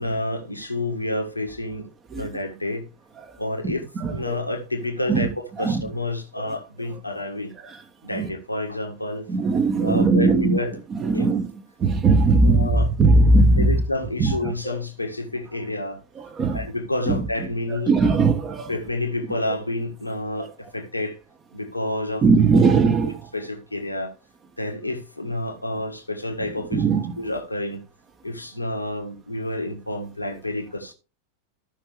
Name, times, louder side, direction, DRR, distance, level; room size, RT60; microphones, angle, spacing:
voice 1, 0.0-1.9 2.1-2.8 3.4-3.8 4.1-7.5 8.0-9.3 9.8-10.7 11.1-11.3 12.4-12.9 13.6-16.0 16.5-17.9 18.7-21.2 21.5-22.2 23.3-24.1 24.6-26.9 27.2-27.8 28.2-30.9, left 2 dB, 85° left, 1.5 m, -29 dB
voice 2, 3.6-4.4 5.1-5.9 6.4-6.6 6.9-7.3 7.5-7.8 8.1-8.3 9.3-10.6 10.9-11.5 11.8-13.8 14.2-14.5 16.1-16.7 17.1-18.7 20.4-20.5 22.2-23.3 26.7-27.1, right 3 dB, 25° right, 1.4 m, -20 dB
14.0 x 5.8 x 3.4 m
figure-of-eight pair, 90°, 0 cm